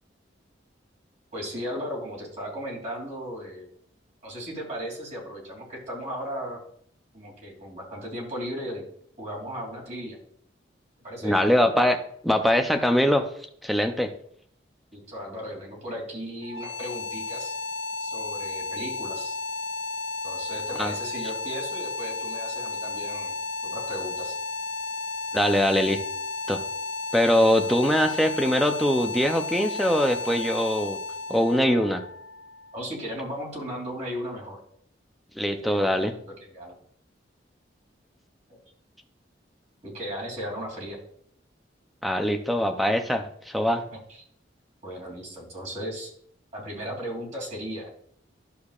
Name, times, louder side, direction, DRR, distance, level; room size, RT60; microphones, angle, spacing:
voice 1, 1.3-3.6 4.2-6.6 7.1-8.8 9.2-10.2 11.0-11.5 14.9-17.6 18.0-19.3 20.2-23.4 23.6-24.4 27.6-27.7 32.7-34.6 35.6-36.0 36.2-36.7 39.8-41.0 44.1-44.2 44.8-46.1 46.5-47.9, equal, 40° right, -3 dB, 2.9 m, -36 dB
voice 2, 11.2-13.3 13.6-14.1 20.8-20.9 25.3-26.0 26.5-26.6 27.1-31.0 31.3-32.0 35.4-36.1 42.0-43.8, equal, ahead, 6 dB, 0.6 m, -22 dB
sound 1, 16.4-33.3, left 3 dB, 65° left, 0.5 m, -33 dB
11.5 x 6.7 x 2.4 m, 0.64 s
head